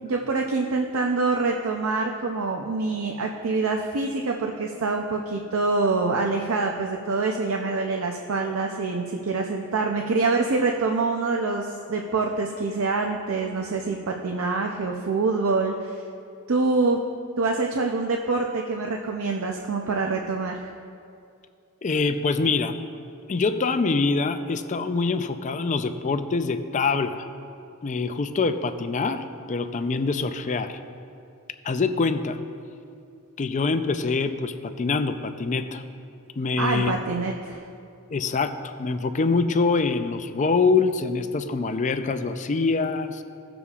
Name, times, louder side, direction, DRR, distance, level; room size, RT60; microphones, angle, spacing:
voice 1, 0.0-16.0 16.5-17.0 17.4-20.7 36.6-37.6, right 3 dB, 70° right, 2 dB, 0.5 m, -25 dB
voice 2, 21.8-22.8 23.3-27.2 27.8-30.8 31.6-32.4 33.4-35.8 36.4-36.9 38.1-43.2, left 4 dB, 35° left, 9 dB, 0.4 m, -25 dB
17.5 x 6.9 x 2.4 m, 2.5 s
head